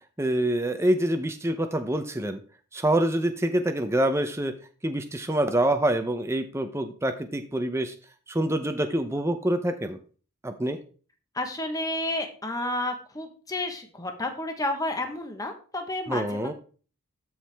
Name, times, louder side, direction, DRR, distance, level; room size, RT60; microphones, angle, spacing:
voice 1, 0.2-2.4 2.7-4.5 4.8-7.9 8.3-10.0 10.4-10.8 16.1-16.5, right 1 dB, 10° right, 7 dB, 0.6 m, -26 dB
voice 2, 11.3-16.5, left 1 dB, 15° left, 5 dB, 1.2 m, -31 dB
13.0 x 4.7 x 3.5 m, 0.39 s
head